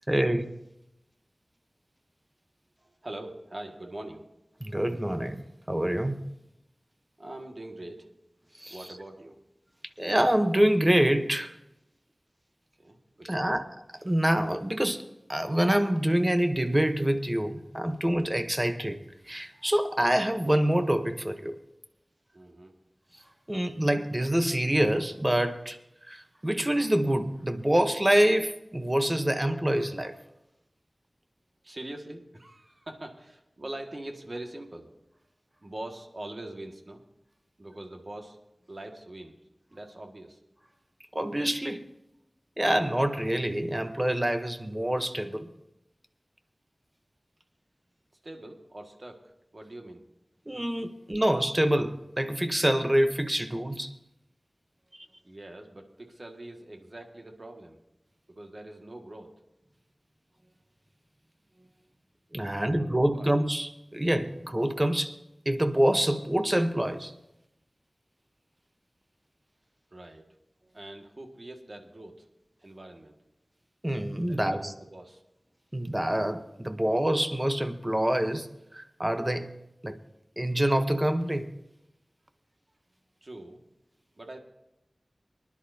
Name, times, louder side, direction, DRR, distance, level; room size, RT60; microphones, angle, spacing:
voice 1, 0.1-0.5 4.6-6.2 8.6-8.8 10.0-11.5 13.2-13.6 14.0-15.0 15.3-19.0 19.3-21.6 23.5-25.8 26.1-30.1 41.1-41.9 42.6-45.5 50.5-53.9 62.3-65.2 65.5-67.1 73.8-74.7 75.7-78.5 78.7-79.5 79.8-80.0 80.4-81.5, right 1 dB, 20° right, 0.8 m, -26 dB
voice 2, 2.8-4.2 7.2-8.1 8.7-9.4 12.8-13.6 22.3-22.7 31.6-34.9 35.6-37.0 37.6-38.4 38.7-39.4 39.7-40.4 48.2-50.0 55.2-57.8 58.3-59.3 62.5-63.3 69.9-70.3 70.7-72.2 72.6-73.1 74.3-75.2 83.2-83.6 84.2-84.4, right 1 dB, 50° right, 1.7 m, -43 dB
24.0 x 11.0 x 2.7 m
wide cardioid pair, 65°, 0 cm